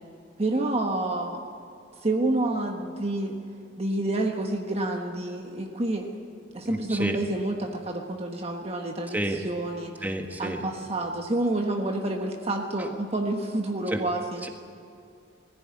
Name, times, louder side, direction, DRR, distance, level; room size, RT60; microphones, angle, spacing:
voice 1, 0.4-1.4 2.0-3.4 3.8-6.1 6.5-10.1 10.4-14.5, right 2 dB, 30° right, 2 dB, 1.2 m, -28 dB
voice 2, 6.6-7.2 9.1-9.4 10.0-10.6 13.9-14.0 14.4-14.5, right 1 dB, 10° right, 3 dB, 1.6 m, -30 dB
21.0 x 15.5 x 9.6 m, 2.5 s
head